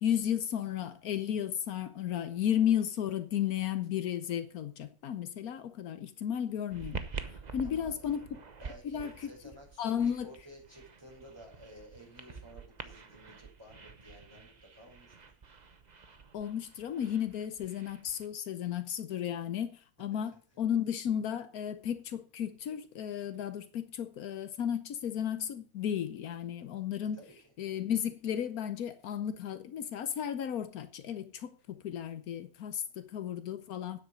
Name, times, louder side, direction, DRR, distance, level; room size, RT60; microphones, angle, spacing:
voice 1, 0.0-7.1 7.5-8.3 8.8-9.1 9.8-10.3 16.3-27.2 27.6-34.0, left 9 dB, 80° left, 1.3 m, -34 dB
sound 1, 6.7-18.3, right 5 dB, 35° right, 0.9 m, -47 dB
voice 2, 7.6-8.1 8.6-15.1 20.5-20.6 27.1-27.5, equal, 15° right, 5.5 m, -54 dB
9.5 x 8.1 x 6.4 m
omnidirectional pair, 1.5 m